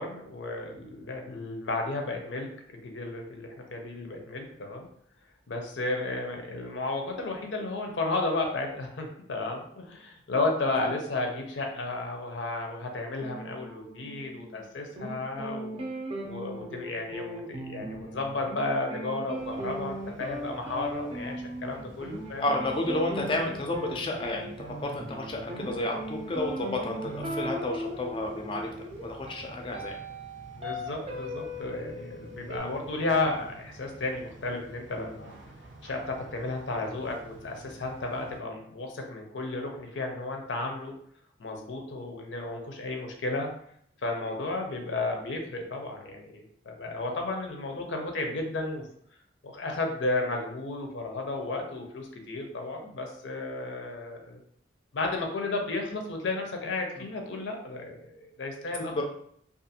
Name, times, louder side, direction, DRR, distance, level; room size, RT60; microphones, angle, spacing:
voice 1, 0.0-2.5 2.7-4.9 5.5-15.8 16.3-21.4 21.6-22.4 30.5-35.3 35.8-40.9 41.4-43.5 44.0-48.9 49.4-54.4 54.9-59.0, left 2 dB, 90° left, 3 dB, 0.6 m, -33 dB
sound 1, 13.2-14.7 15.0-32.6, right 1 dB, 30° right, 0.4 m, -38 dB
sound 2, 19.3-38.4, right 2 dB, 80° right, 0.5 m, -50 dB
voice 2, 22.4-24.5 24.8-30.0 57.0-57.1 58.8-59.0, left 1 dB, 30° left, 1 dB, 0.4 m, -31 dB
2.5 x 2.4 x 2.7 m, 0.66 s
head